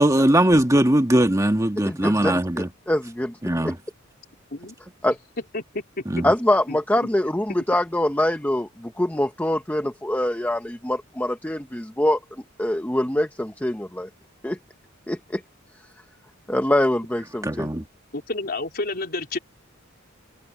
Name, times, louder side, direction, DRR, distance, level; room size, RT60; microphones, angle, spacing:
voice 1, 0.0-2.7 3.4-3.7 6.1-6.3 17.4-17.8, right 1 dB, 15° right, 1.7 m, -20 dB
voice 2, 1.8-3.7 5.0-5.2 6.2-12.2 12.6-14.1 14.4-14.6 15.1-15.4 16.5-17.7, left 1 dB, 10° left, 0.9 m, -24 dB
voice 3, 5.5-6.2 6.7-6.8 18.1-19.4, left 2 dB, 50° left, 3.8 m, -30 dB
head